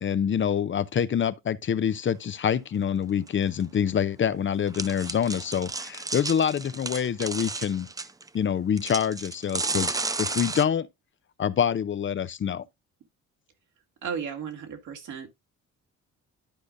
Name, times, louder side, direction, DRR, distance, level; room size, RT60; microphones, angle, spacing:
voice 1, 0.0-7.9 8.3-10.9 11.4-12.6, left 8 dB, 40° left, 0.6 m, -26 dB
sound 1, 3.3-3.4 3.6-3.7 4.7-8.3 8.8-10.6, right 3 dB, 10° right, 0.4 m, -32 dB
voice 2, 14.0-15.3, right 7 dB, 75° right, 2.3 m, -34 dB
12.0 x 5.0 x 2.6 m
cardioid pair, 90°, 30 cm